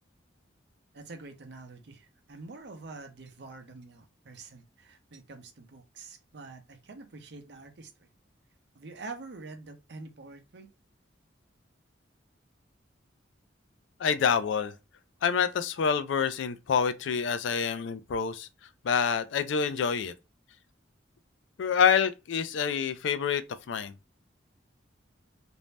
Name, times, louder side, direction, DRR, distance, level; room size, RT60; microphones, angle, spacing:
voice 1, 0.9-8.1 8.7-10.7, right 3 dB, 60° right, 0.6 m, -46 dB
voice 2, 14.0-14.7 15.2-18.5 18.8-20.1 21.6-23.9, left 6 dB, 75° left, 0.4 m, -27 dB
2.6 x 2.0 x 3.2 m
head